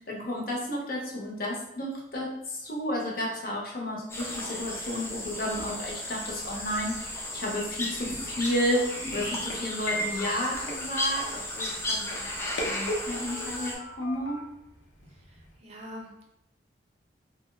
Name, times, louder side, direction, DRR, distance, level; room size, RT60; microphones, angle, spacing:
voice 1, 0.0-8.8 9.1-14.4, left 1 dB, 50° left, -2 dB, 0.6 m, -32 dB
voice 2, 3.8-4.2 15.0-16.2, left 1 dB, 35° right, -2 dB, 0.5 m, -45 dB
sound 1, 4.1-13.7, left 1 dB, 15° left, 0.4 m, -35 dB
sound 2, 7.8-15.6, left 1 dB, 85° left, 0.7 m, -39 dB
2.6 x 2.0 x 3.2 m, 0.85 s
head